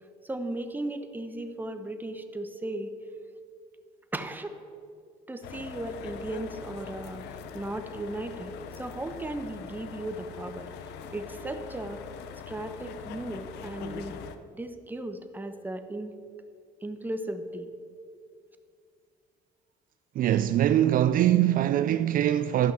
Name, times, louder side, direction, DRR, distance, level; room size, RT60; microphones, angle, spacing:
voice 1, 0.2-2.9 4.1-4.6 5.3-7.2 7.5-10.7 11.1-12.0 12.5-14.2 14.5-16.1 16.8-17.7, right 1 dB, 10° right, 0.9 m, -36 dB
sound 1, 5.4-14.4, left 7 dB, 85° left, 0.7 m, -42 dB
voice 2, 20.2-22.7, right 12 dB, 55° right, 0.4 m, -23 dB
12.0 x 5.8 x 7.4 m
cardioid pair, 110°, 17 cm